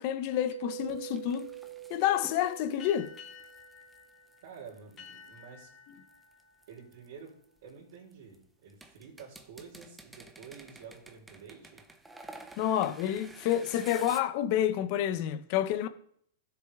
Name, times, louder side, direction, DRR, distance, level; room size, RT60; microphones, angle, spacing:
voice 1, 0.0-1.5 1.9-3.1 12.6-15.9, left 11 dB, 40° left, 0.8 m, -29 dB
Mallet percussion, 0.5-4.0, right 15 dB, 75° right, 0.7 m, -45 dB
sound 1, 0.8-5.4 6.1-8.3 8.7-14.2, right 2 dB, 5° right, 0.7 m, -51 dB
sound 2, 2.8-7.9, left 7 dB, 20° left, 2.2 m, -53 dB
voice 2, 4.4-5.7 6.7-7.3 7.6-11.8, right 6 dB, 60° right, 3.5 m, -49 dB
15.5 x 6.9 x 3.6 m
supercardioid pair, 160°, 0 cm